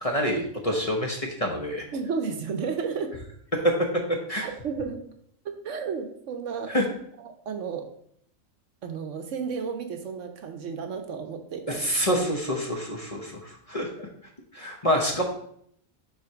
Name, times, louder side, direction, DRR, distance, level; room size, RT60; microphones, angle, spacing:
voice 1, 0.0-1.8 4.3-4.4 6.7-6.8 11.7-14.1 14.5-15.2, equal, 30° left, 0 dB, 0.8 m, -27 dB
voice 2, 1.9-3.2 4.4-5.0 5.4-6.7 7.2-7.9 8.8-12.3, right 5 dB, 70° right, 5 dB, 1.1 m, -33 dB
7.0 x 3.2 x 5.7 m, 0.67 s
omnidirectional pair, 1.4 m